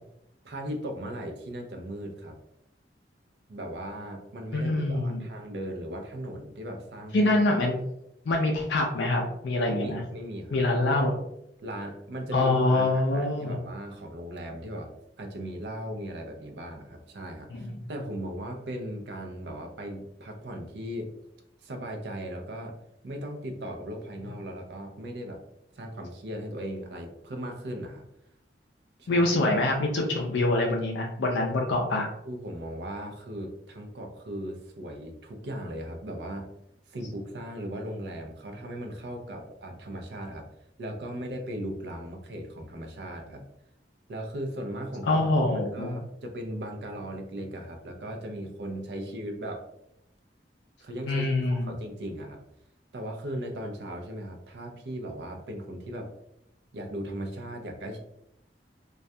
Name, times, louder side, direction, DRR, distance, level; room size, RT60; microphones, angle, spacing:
voice 1, 0.4-2.4 3.5-7.3 9.7-10.6 11.6-14.9 15.2-21.1 21.6-22.7 23.0-25.4 25.7-28.1 29.0-29.3 32.2-36.5 36.9-40.4 40.8-43.4 44.1-45.2 45.5-49.6 50.8-52.4 52.9-56.1 56.7-58.0, equal, 65° right, 3 dB, 0.4 m, -37 dB
voice 2, 4.5-5.3 7.1-7.8 8.3-10.0 10.5-11.2 12.3-13.6 17.5-17.7 29.1-32.1 45.1-45.9 51.1-51.7, left 2 dB, 80° left, 0 dB, 0.4 m, -25 dB
2.3 x 2.1 x 2.6 m, 0.80 s
head